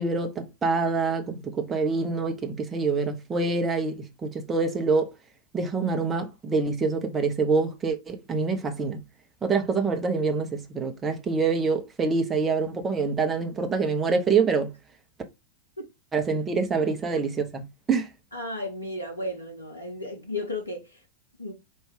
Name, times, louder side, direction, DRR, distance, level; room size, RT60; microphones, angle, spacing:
voice 1, 0.0-5.1 5.5-9.0 9.4-14.7 16.1-18.1, right 4 dB, 20° right, 0.8 m, -26 dB
voice 2, 18.3-21.0 21.4-21.5, left 1 dB, 80° left, 0.8 m, -34 dB
4.7 x 2.6 x 3.3 m
figure-of-eight pair, 90°, 0 cm